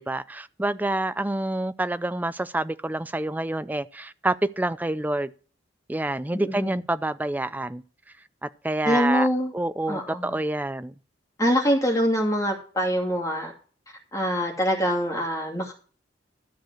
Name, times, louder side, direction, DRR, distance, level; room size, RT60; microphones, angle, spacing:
voice 1, 0.0-5.3 5.9-7.8 8.4-9.3 9.5-11.0, right 1 dB, 10° right, 0.4 m, -27 dB
voice 2, 6.3-6.7 8.8-9.5 9.9-10.3 11.4-13.5 14.1-15.7, equal, 20° left, 2.6 m, -24 dB
13.0 x 4.8 x 7.7 m
head